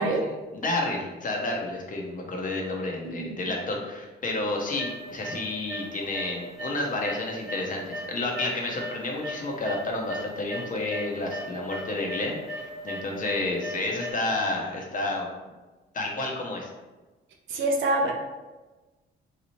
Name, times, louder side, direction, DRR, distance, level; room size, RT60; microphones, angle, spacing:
voice 1, 0.0-15.3 15.9-16.7, left 2 dB, 40° left, 0 dB, 0.9 m, -30 dB
sound 1, 4.8-5.4 5.7-6.3 6.6-9.8 10.1-14.1, equal, ahead, 1.4 m, -36 dB
voice 2, 17.5-18.1, right 2 dB, 75° right, 1 dB, 0.8 m, -25 dB
3.9 x 2.7 x 3.1 m, 1.2 s
cardioid pair, 90°, 20 cm